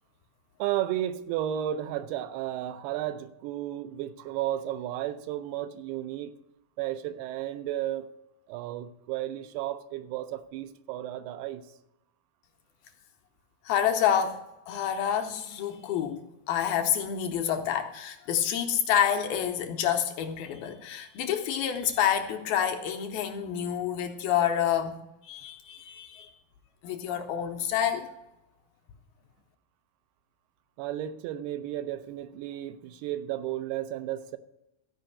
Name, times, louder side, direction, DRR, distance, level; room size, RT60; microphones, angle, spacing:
voice 1, 0.6-6.4 6.8-8.1 8.5-11.6 30.8-34.4, right 12 dB, 80° right, 2.6 m, -33 dB
voice 2, 13.7-25.0 25.2-26.3 26.8-28.1, left 9 dB, 80° left, 2.4 m, -28 dB
13.5 x 5.1 x 8.4 m
omnidirectional pair, 4.7 m